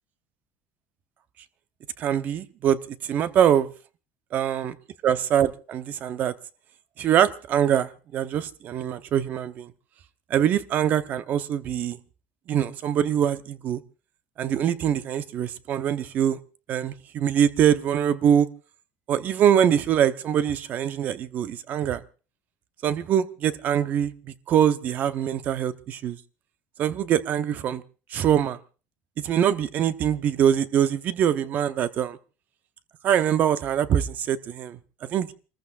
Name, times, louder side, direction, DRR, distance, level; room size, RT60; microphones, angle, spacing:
voice 1, 2.0-3.7 4.3-4.8 5.0-6.3 7.0-9.7 10.3-12.0 12.5-13.8 14.4-16.4 16.7-18.5 19.1-22.0 22.8-26.2 26.8-27.8 28.1-28.6 29.2-32.2 33.0-35.3, right 9 dB, 45° right, 0.8 m, -23 dB
29.0 x 14.5 x 2.5 m
cardioid pair, 145°, 4 cm